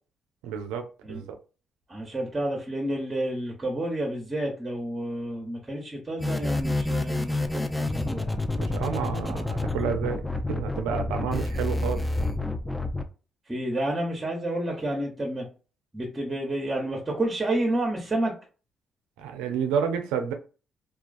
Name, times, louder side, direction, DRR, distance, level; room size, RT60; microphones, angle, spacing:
voice 1, 0.4-1.4 8.6-10.2 10.5-12.0 19.2-20.3, right 7 dB, 90° right, 0.4 m, -30 dB
voice 2, 1.9-8.4 13.5-15.5 15.9-18.3, right 1 dB, 25° right, 0.8 m, -30 dB
sound 1, 6.2-13.0, left 2 dB, 10° left, 0.4 m, -28 dB
2.3 x 2.3 x 2.4 m
supercardioid pair, 60°, 0 cm